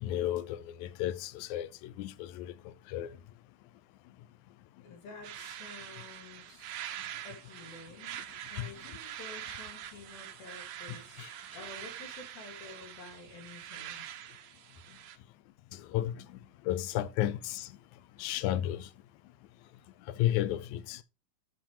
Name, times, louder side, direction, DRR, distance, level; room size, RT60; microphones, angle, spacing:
voice 1, 0.0-2.5 2.9-3.2 10.9-11.3 15.7-16.4 16.7-17.7 18.2-18.9 20.1-21.0, left 12 dB, 70° left, 1.9 m, -33 dB
voice 2, 4.8-6.8 7.2-8.2 8.5-14.2, left 3 dB, 90° left, 4.7 m, -50 dB
sound 1, 5.2-15.2, right 11 dB, 70° right, 1.9 m, -44 dB
13.0 x 4.5 x 5.0 m
omnidirectional pair, 4.1 m